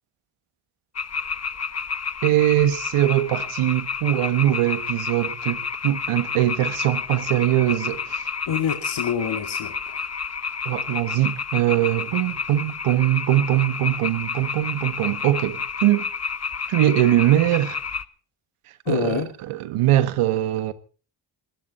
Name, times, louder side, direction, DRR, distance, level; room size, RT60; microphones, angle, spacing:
sound 1, 0.9-18.0, left 5 dB, 30° left, 1.1 m, -30 dB
voice 1, 2.2-8.3 10.6-16.0 16.7-17.8 18.9-19.2 19.5-20.7, right 14 dB, 90° right, 1.5 m, -21 dB
voice 2, 8.5-10.1 18.8-19.3, left 8 dB, 65° left, 2.5 m, -27 dB
20.0 x 14.5 x 4.2 m
cardioid pair, 60°, 50 cm